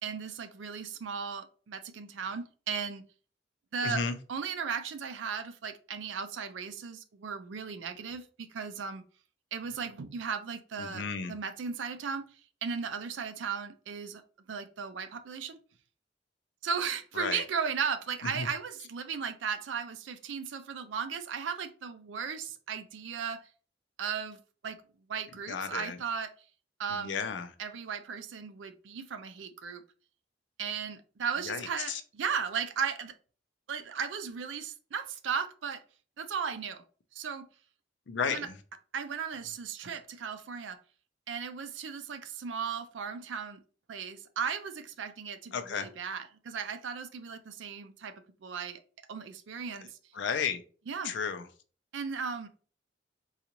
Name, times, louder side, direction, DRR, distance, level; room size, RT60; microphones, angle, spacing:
voice 1, 0.0-3.0 3.7-4.0 4.3-9.0 9.5-12.3 12.6-14.2 14.5-15.6 16.6-23.4 24.0-24.8 25.1-26.3 26.8-27.2 27.6-29.8 30.6-33.1 33.7-35.8 36.2-36.8 37.1-37.5 38.3-38.5 38.9-40.8 41.3-43.6 43.9-48.1 48.4-48.8 49.1-50.0 50.9-51.1 51.9-52.5, right 6 dB, 85° right, 0.4 m, -36 dB
voice 2, 3.8-4.2 10.8-11.4 17.1-17.4 18.2-18.5 25.5-26.0 26.9-27.5 31.4-32.0 38.1-38.6 45.5-45.9 50.1-50.6 51.0-51.5, left 6 dB, 75° left, 0.5 m, -33 dB
3.9 x 2.4 x 2.9 m
head